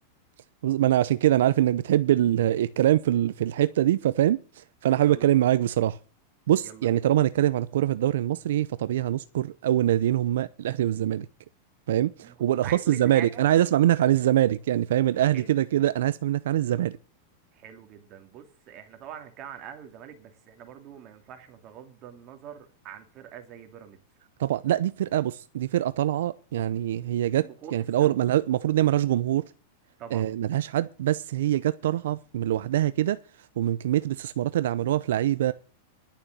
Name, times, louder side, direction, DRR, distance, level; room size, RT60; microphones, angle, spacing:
voice 1, 0.6-6.0 6.5-11.3 11.9-17.0 24.4-29.4 30.1-33.2 33.6-35.5, right 12 dB, 75° right, 0.6 m, -24 dB
voice 2, 5.0-5.4 6.6-7.0 12.2-12.3 12.6-13.5 15.3-15.5 17.5-24.0 27.4-28.2 30.0-30.3, right 9 dB, 35° right, 2.8 m, -44 dB
11.5 x 6.9 x 9.2 m
supercardioid pair, 155°, 0 cm